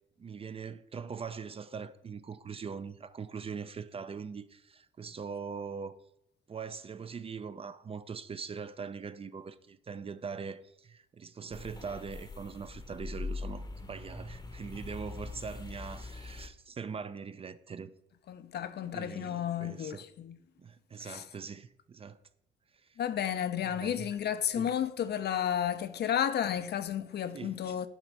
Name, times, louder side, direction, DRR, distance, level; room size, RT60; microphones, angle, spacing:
voice 1, 0.2-6.0 6.5-17.9 18.9-20.0 20.6-22.2 22.8-23.0 23.6-24.1 24.6-24.7 27.3-27.6, right 6 dB, 30° right, 0.4 m, -42 dB
sound 1, 11.5-16.5, left 3 dB, 20° left, 0.8 m, -42 dB
voice 2, 18.3-20.4 21.0-21.2 23.0-27.9, left 9 dB, 55° left, 0.5 m, -32 dB
7.3 x 4.0 x 4.7 m
cardioid pair, 90°, 20 cm